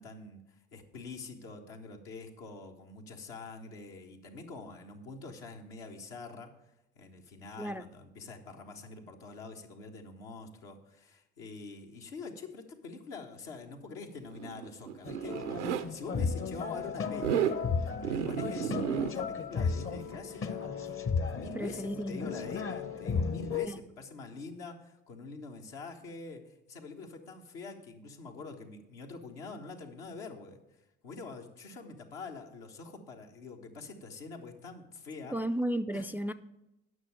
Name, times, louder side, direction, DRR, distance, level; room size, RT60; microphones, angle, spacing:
voice 1, 0.0-6.5 6.9-17.4 18.0-20.7 21.2-30.6 31.0-35.4 35.9-36.1, left 3 dB, 70° left, 1.4 m, -45 dB
Zipper (clothing), 14.2-15.9 17.1-17.6 18.0-19.1, right 8 dB, 85° right, 0.5 m, -32 dB
sound 1, 15.0-23.7, left 5 dB, 40° left, 1.0 m, -34 dB
voice 2, 21.6-22.2 23.6-23.8 35.3-36.3, right 1 dB, 5° right, 0.3 m, -33 dB
9.5 x 6.2 x 7.6 m
figure-of-eight pair, 50°, 35 cm